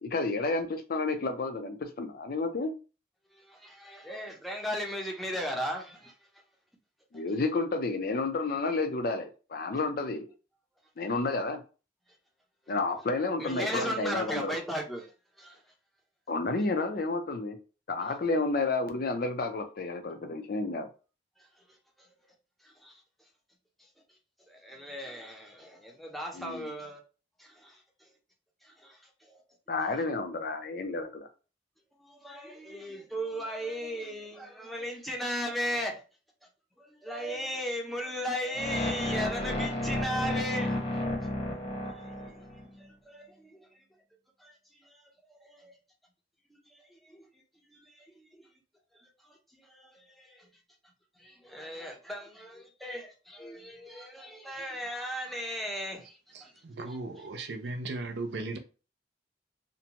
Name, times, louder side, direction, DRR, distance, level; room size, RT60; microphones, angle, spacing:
voice 1, 0.0-2.7 7.1-10.3 11.0-11.6 12.7-14.6 16.3-17.6 17.9-20.9 26.3-26.7 29.7-31.3, left 3 dB, 55° left, 0.5 m, -31 dB
voice 2, 3.3-6.1 12.1-12.2 13.4-15.7 21.4-22.1 22.6-23.0 23.8-23.9 24.5-27.0 27.4-28.1 28.6-29.4 32.0-36.0 36.8-40.8 41.9-43.7 44.4-45.8 46.5-47.4 47.7-48.5 48.9-50.5 51.2-56.5 56.9-57.0, equal, ahead, 0.6 m, -37 dB
sound 1, 38.5-42.6, left 1 dB, 35° left, 0.8 m, -32 dB
voice 3, 56.3-58.6, right 2 dB, 70° right, 0.5 m, -37 dB
2.6 x 2.2 x 2.8 m
head